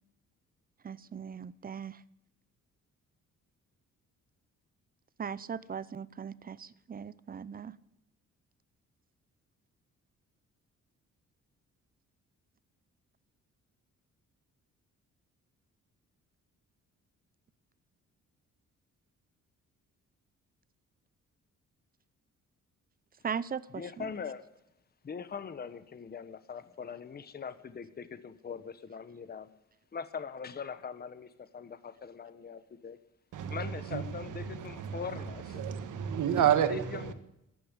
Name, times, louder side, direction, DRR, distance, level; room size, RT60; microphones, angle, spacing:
voice 1, 0.8-2.0 5.2-7.8 23.2-24.1, right 7 dB, 30° right, 0.6 m, -39 dB
voice 2, 23.7-24.4 25.0-29.5 29.9-33.0 33.5-35.6 36.4-37.1, left 6 dB, 30° left, 0.9 m, -42 dB
voice 3, 34.5-35.2 35.5-37.1, right 9 dB, 80° right, 1.6 m, -29 dB
14.0 x 10.5 x 8.8 m
cardioid pair, 110°, 31 cm